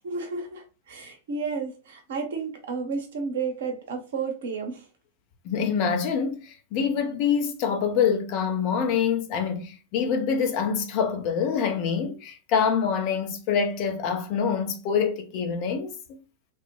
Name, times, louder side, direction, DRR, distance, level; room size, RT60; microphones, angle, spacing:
voice 1, 0.0-4.9, right 4 dB, 60° right, 0.7 m, -32 dB
voice 2, 5.4-16.2, left 6 dB, 45° left, 0.5 m, -26 dB
3.0 x 2.1 x 2.9 m
figure-of-eight pair, 90°, 0 cm